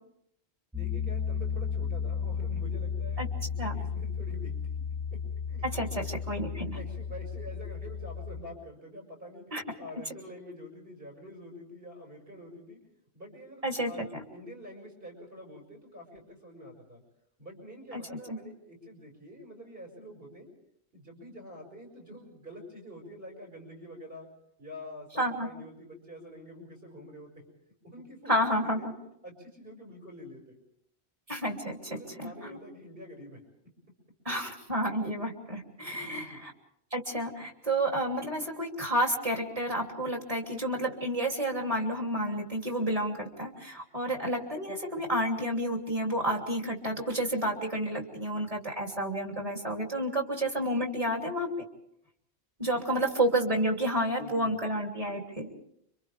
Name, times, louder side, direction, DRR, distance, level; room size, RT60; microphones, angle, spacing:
Piano, 0.7-8.4, left 6 dB, 5° right, 1.4 m, -34 dB
voice 1, 0.7-3.2 3.6-4.5 5.1-5.2 5.5-5.6 6.1-6.4 6.7-12.8 13.1-17.0 17.4-20.5 20.9-24.3 24.6-27.3 27.8-28.9 29.2-30.6 31.9-33.4 36.1-36.4 52.7-53.1 54.2-54.6, equal, 60° right, 0 dB, 6.5 m, -47 dB
voice 2, 5.6-6.8 9.5-9.6 13.6-14.2 17.9-18.0 18.3-18.4 25.2-25.5 28.3-28.9 31.3-32.6 34.2-36.5 36.9-51.5 52.6-55.5, right 1 dB, 35° right, 1 dB, 3.1 m, -30 dB
29.5 x 25.5 x 3.5 m, 0.72 s
omnidirectional pair, 1.1 m